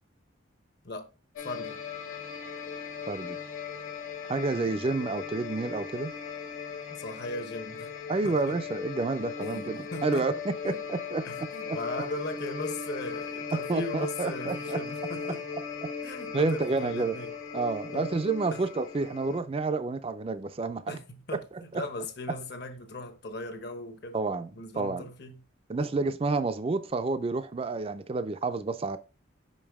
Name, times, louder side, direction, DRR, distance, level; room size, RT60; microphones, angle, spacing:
sound 1, 1.4-19.4, left 6 dB, 90° left, 1.2 m, -38 dB
voice 1, 1.4-1.8 4.5-4.8 6.9-7.9 8.2-8.6 9.4-10.3 10.6-10.8 11.2-15.4 16.0-17.3 17.9-18.1 18.5-18.6 20.9-24.2 24.6-25.4, left 2 dB, 55° left, 1.0 m, -38 dB
voice 2, 3.1-3.4 4.3-6.1 8.1-11.8 13.5-14.8 15.8-15.9 16.3-17.2 17.5-21.0 21.3-21.4 21.7-21.8 24.1-25.0 25.7-29.0, right 3 dB, 30° right, 0.4 m, -30 dB
5.3 x 5.2 x 3.5 m
head